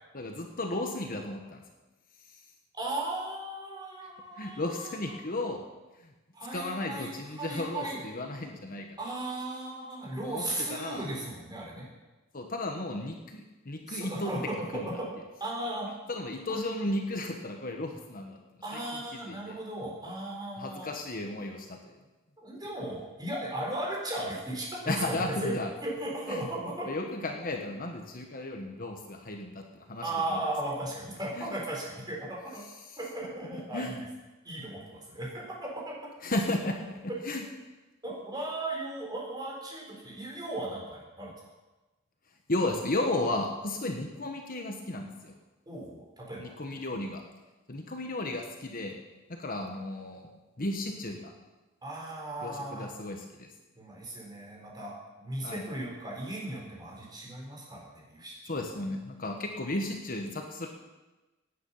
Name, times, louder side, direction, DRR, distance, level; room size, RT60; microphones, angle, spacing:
voice 1, 0.1-1.6 4.4-5.6 6.5-8.9 10.2-11.0 12.3-14.3 14.7-14.9 16.1-18.4 18.7-19.0 19.3-19.6 20.6-21.9 24.9-25.7 26.3-26.4 26.9-30.4 31.3-31.5 33.7-33.9 36.2-37.0 37.3-37.4 42.5-45.3 46.4-47.2 47.7-49.0 49.3-50.3 50.6-51.3 52.4-53.5 55.4-55.6 58.5-60.7, left 2 dB, 40° left, 3 dB, 1.3 m, -34 dB
voice 2, 2.7-5.2 6.3-8.0 9.0-11.9 13.9-15.1 15.4-15.9 18.6-20.9 22.4-26.9 30.0-32.6 33.0-34.0 34.4-36.0 37.1-37.2 38.0-41.3 45.7-46.5 51.8-52.9 53.8-58.5, right 1 dB, 20° right, -3 dB, 4.2 m, -36 dB
17.0 x 9.4 x 5.7 m, 1.1 s
head